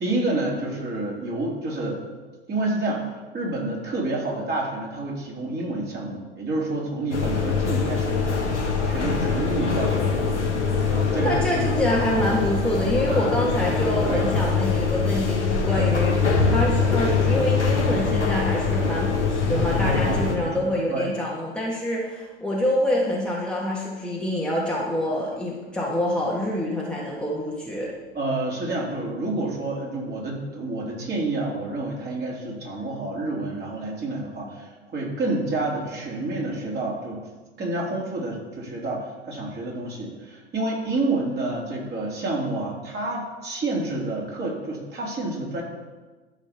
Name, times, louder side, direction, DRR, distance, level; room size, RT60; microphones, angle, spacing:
voice 1, 0.0-2.0 2.5-10.2 10.9-11.7 13.1-13.3 14.1-14.3 15.8-15.9 20.0-21.1 28.2-37.2 37.6-45.6, right 2 dB, 30° right, -3 dB, 3.6 m, -29 dB
sound 1, 7.1-20.4, left 4 dB, 90° left, 1.6 m, -23 dB
voice 2, 11.2-16.1 16.5-27.9, left 1 dB, 5° left, -5 dB, 1.9 m, -26 dB
13.0 x 5.2 x 7.0 m, 1.3 s
figure-of-eight pair, 80°, 34 cm